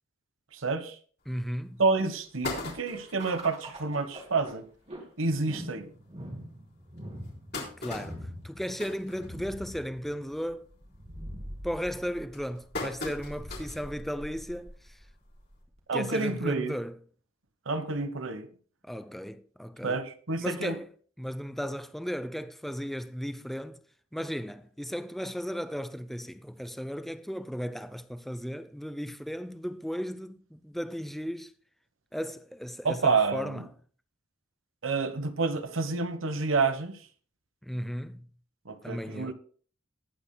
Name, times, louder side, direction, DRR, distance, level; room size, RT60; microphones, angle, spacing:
voice 1, 0.5-1.0 1.8-4.6 5.2-5.9 15.9-16.8 17.7-18.5 19.8-20.8 32.8-33.6 34.8-37.0 38.7-39.3, right 4 dB, 85° right, 1.2 m, -29 dB
sound 1, 1.3-1.4 1.9-2.0 2.2-3.3 3.8-3.9 4.2-4.3 4.6-4.8 5.5-5.6 6.1-6.2 7.0-9.8 10.2-10.5 10.9-11.3 11.9-13.9 14.3-14.4 15.6-15.7, left 2 dB, 55° left, 3.7 m, -39 dB
voice 2, 1.3-1.8 7.8-10.7 11.6-15.0 15.9-17.0 18.8-20.0 20.4-20.9 21.2-23.8 24.1-31.5 32.1-33.7 37.6-38.3 38.8-39.3, equal, ahead, 0.4 m, -35 dB
sound 2, 3.2-15.8, equal, 35° right, 2.5 m, -44 dB
19.5 x 8.6 x 2.2 m
head